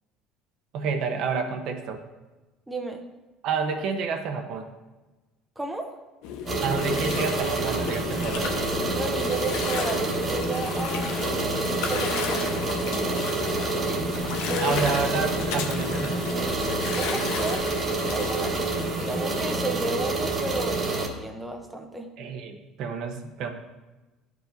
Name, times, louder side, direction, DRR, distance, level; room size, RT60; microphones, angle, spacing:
voice 1, 0.7-2.0 3.4-4.7 6.6-8.5 14.6-16.3 22.2-23.5, right 5 dB, 60° right, 5 dB, 0.8 m, -29 dB
voice 2, 2.7-3.1 5.6-6.0 8.9-13.2 14.5-14.8 16.9-17.8 18.0-18.7 19.0-22.1, right 2 dB, 5° right, 3 dB, 0.7 m, -33 dB
Gurgling, 6.2-19.5, left 6 dB, 80° left, 0.8 m, -33 dB
sound 1, 6.5-21.1, right 3 dB, 35° right, 1.3 m, -28 dB
11.5 x 4.8 x 2.6 m, 1.2 s
cardioid pair, 135°, 0 cm